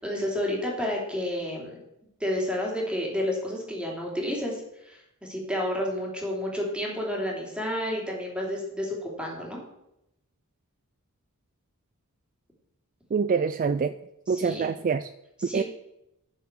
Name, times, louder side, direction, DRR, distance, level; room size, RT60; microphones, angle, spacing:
voice 1, 0.0-1.8 2.2-9.6 14.3-14.7 15.4-15.6, left 1 dB, 5° right, -2 dB, 3.2 m, -30 dB
voice 2, 13.1-13.9 14.3-15.1 15.5-15.6, right 5 dB, 40° right, 12 dB, 0.3 m, -25 dB
11.0 x 7.1 x 6.2 m, 0.84 s
head